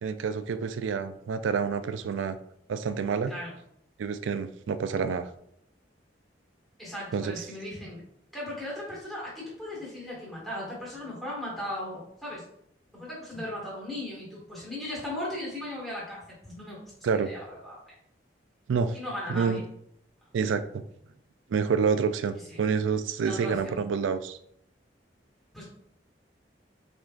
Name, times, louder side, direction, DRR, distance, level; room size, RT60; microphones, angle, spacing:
voice 1, 0.0-2.4 2.7-3.3 4.0-5.3 7.1-7.4 17.0-17.3 18.7-19.0 19.3-19.6 20.3-20.8 21.5-24.4, right 5 dB, 85° right, 11 dB, 0.4 m, -28 dB
voice 2, 6.8-8.0 8.3-12.4 12.9-16.8 17.2-17.9 18.9-19.7 22.5-22.6 23.2-23.8 25.5-25.6, left 1 dB, ahead, -7 dB, 1.8 m, -37 dB
5.0 x 3.7 x 2.5 m, 0.71 s
head